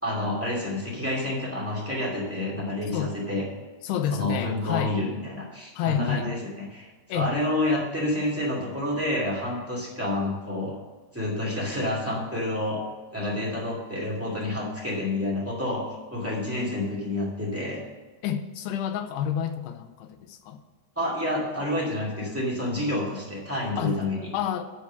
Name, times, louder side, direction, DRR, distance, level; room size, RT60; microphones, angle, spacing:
voice 1, 0.0-3.5 4.1-10.8 11.1-12.8 13.1-15.8 16.1-17.8 20.9-24.3, left 1 dB, 5° right, -3 dB, 1.1 m, -29 dB
voice 2, 3.8-5.0 5.8-6.3 7.1-7.3 18.2-20.6 23.8-24.0 24.3-24.6, left 9 dB, 85° left, 8 dB, 2.7 m, -29 dB
12.0 x 4.7 x 6.9 m, 1.4 s
omnidirectional pair, 4.8 m